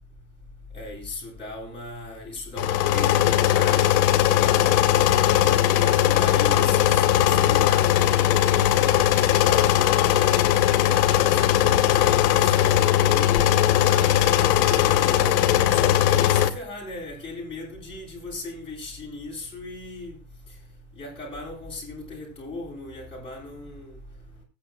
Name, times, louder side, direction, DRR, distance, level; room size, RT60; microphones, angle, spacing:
voice 1, 0.7-4.9 5.6-7.9 8.2-10.4 11.0-15.4 15.7-20.2 21.0-24.0, left 2 dB, 15° left, 7.6 m, -37 dB
sound 1, 2.6-16.5, left 12 dB, 70° left, 1.8 m, -19 dB
21.0 x 9.7 x 2.4 m
supercardioid pair, 130°, 41 cm